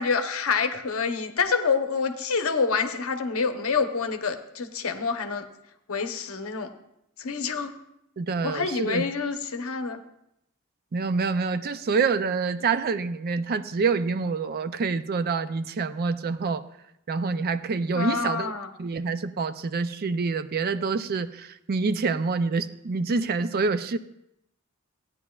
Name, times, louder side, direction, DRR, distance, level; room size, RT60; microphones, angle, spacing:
voice 1, 0.0-5.4 5.9-6.7 7.2-7.7 8.4-10.0 17.9-18.7, left 5 dB, 70° left, 7 dB, 0.8 m, -27 dB
voice 2, 8.2-9.1 10.9-16.6 17.1-18.5 18.8-24.0, right 4 dB, 45° right, 12 dB, 0.4 m, -27 dB
15.0 x 9.6 x 2.3 m, 0.81 s
head